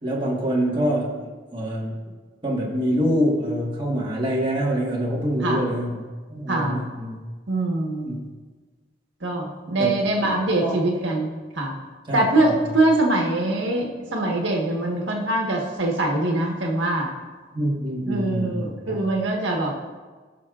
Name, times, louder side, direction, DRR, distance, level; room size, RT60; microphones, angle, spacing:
voice 1, 0.0-2.0 2.4-7.2 8.0-8.2 9.8-9.9 10.6-10.8 12.1-12.6 17.5-19.0, equal, 25° right, -4 dB, 1.5 m, -25 dB
voice 2, 6.5-6.8 7.5-8.2 9.2-11.7 12.1-17.1 18.1-19.7, right 2 dB, 80° right, -1 dB, 1.4 m, -23 dB
18.0 x 6.3 x 2.5 m, 1.4 s
head